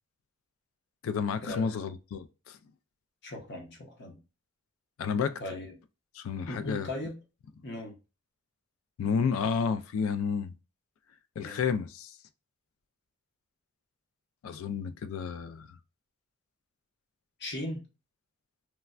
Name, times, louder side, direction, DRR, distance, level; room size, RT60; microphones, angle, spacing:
voice 1, 1.0-2.6 5.0-5.4 6.2-6.9 9.0-10.5 11.4-12.2 14.4-15.8, left 6 dB, 75° left, 0.3 m, -31 dB
voice 2, 3.2-4.2 5.4-5.8 6.5-7.2 7.6-7.9 11.4-11.6 17.4-17.9, left 1 dB, 55° left, 0.8 m, -38 dB
3.2 x 2.1 x 2.4 m
head